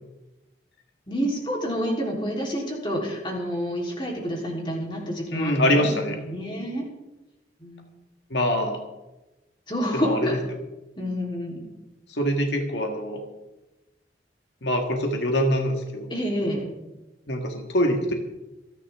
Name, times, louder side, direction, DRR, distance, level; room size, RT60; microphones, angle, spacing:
voice 1, 1.1-6.8 7.6-7.9 9.7-10.3 11.0-11.7 16.1-16.6, equal, 25° left, -2 dB, 3.6 m, -28 dB
voice 2, 5.3-6.2 8.3-8.8 9.9-10.3 12.1-13.2 14.6-16.1 17.3-18.1, equal, 80° left, 3 dB, 1.7 m, -24 dB
27.0 x 10.0 x 3.6 m, 1.0 s
head